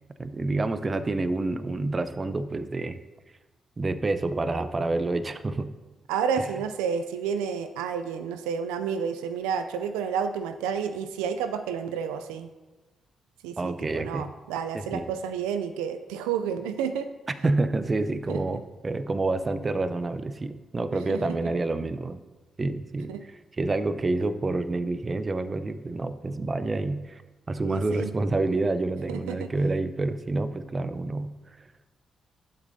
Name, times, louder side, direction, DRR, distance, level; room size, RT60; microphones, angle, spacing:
voice 1, 0.2-3.0 3.8-5.7 6.3-6.5 13.6-14.3 14.7-15.1 17.4-22.2 22.6-27.2 27.5-31.3, right 2 dB, 35° right, 12 dB, 0.6 m, -28 dB
voice 2, 6.1-12.5 13.4-17.1 18.3-18.4 21.1-21.4 23.1-23.2 27.6-28.1 29.1-29.5, right 7 dB, 90° right, 9 dB, 0.3 m, -30 dB
12.0 x 7.4 x 2.7 m, 1.2 s
hypercardioid pair, 45°, 0 cm